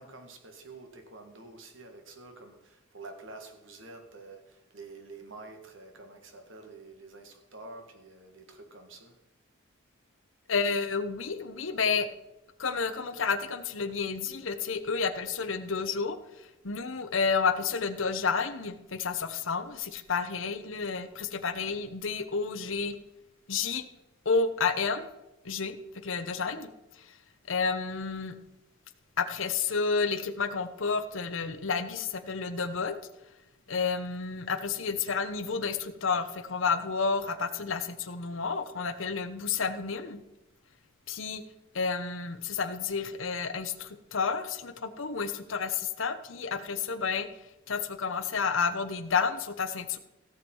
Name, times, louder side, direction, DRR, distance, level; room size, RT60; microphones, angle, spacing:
voice 1, 0.0-9.2, right 3 dB, 60° right, 5 dB, 1.8 m, -48 dB
voice 2, 10.5-12.1 12.6-16.2 16.6-22.9 23.5-23.9 24.2-25.1 25.4-26.7 27.5-28.3 29.2-33.0 33.7-40.2 41.1-41.4 41.7-47.3 47.7-50.0, left 5 dB, 65° left, 10 dB, 0.9 m, -30 dB
16.5 x 7.3 x 4.6 m, 0.96 s
head